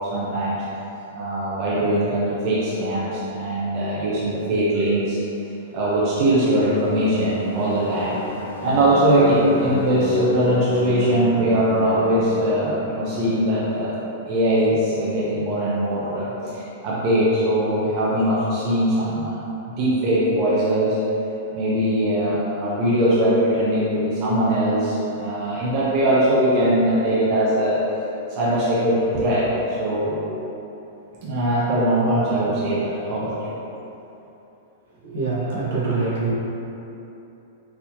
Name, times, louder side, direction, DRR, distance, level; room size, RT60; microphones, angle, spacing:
voice 1, 0.1-0.6 1.1-5.2 5.7-8.2 8.6-13.9 14.3-19.4 19.7-21.0 21.5-27.8 28.3-30.2 31.2-33.5 35.5-36.1, right 1 dB, 30° right, -8 dB, 0.5 m, -21 dB
sound 1, 5.9-14.6, left 1 dB, 70° left, 0.5 m, -35 dB
voice 2, 35.0-36.3, right 3 dB, 75° right, -7 dB, 1.0 m, -24 dB
3.9 x 2.7 x 2.9 m, 3.0 s
supercardioid pair, 175°, 0 cm